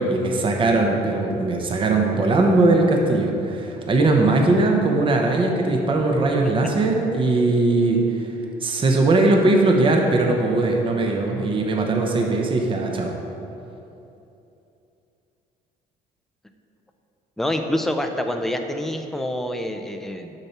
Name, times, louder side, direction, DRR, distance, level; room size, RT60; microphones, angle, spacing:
voice 1, 0.0-8.3 8.6-13.2, right 2 dB, 30° right, 1 dB, 0.8 m, -20 dB
voice 2, 17.4-20.3, left 1 dB, ahead, 5 dB, 0.4 m, -26 dB
6.9 x 5.9 x 4.2 m, 2.8 s
cardioid pair, 110°, 17 cm